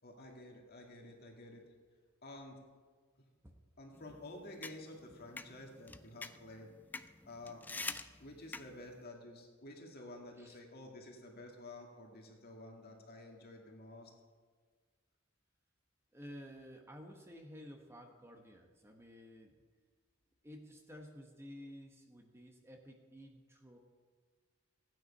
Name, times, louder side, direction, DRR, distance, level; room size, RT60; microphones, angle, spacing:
voice 1, 0.0-1.7 2.2-2.6 3.8-6.7 7.2-7.6 8.2-14.1, left 1 dB, 50° left, 1 dB, 2.2 m, -51 dB
sound 1, 3.9-9.0, left 3 dB, 10° left, 0.3 m, -47 dB
voice 2, 16.1-19.6 20.4-23.8, equal, 10° right, 2 dB, 1.0 m, -53 dB
15.5 x 9.4 x 5.4 m, 1.5 s
head